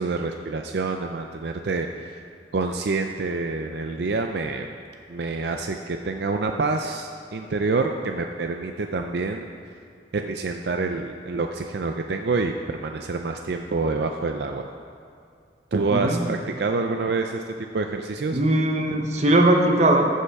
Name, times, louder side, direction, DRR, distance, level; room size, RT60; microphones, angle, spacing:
voice 1, 0.0-2.2 2.5-4.7 5.1-9.5 10.1-14.7 15.7-18.4, right 3 dB, 70° right, 4 dB, 0.5 m, -27 dB
voice 2, 15.9-16.2 18.3-20.2, right 1 dB, 40° right, 3 dB, 0.9 m, -20 dB
14.5 x 5.6 x 4.7 m, 2.3 s
head